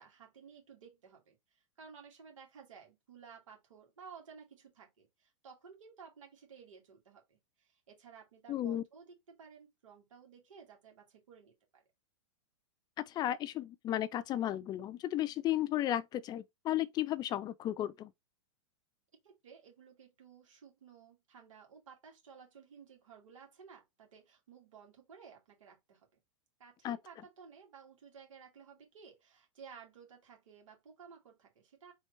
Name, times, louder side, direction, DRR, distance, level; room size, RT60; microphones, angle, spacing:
voice 1, 0.0-11.8 19.2-26.1 26.6-31.9, right 6 dB, 80° right, 2.5 m, -56 dB
voice 2, 8.5-8.8 13.0-18.1 26.8-27.0, left 12 dB, 25° left, 0.5 m, -34 dB
4.4 x 3.5 x 3.3 m
hypercardioid pair, 125°, 16 cm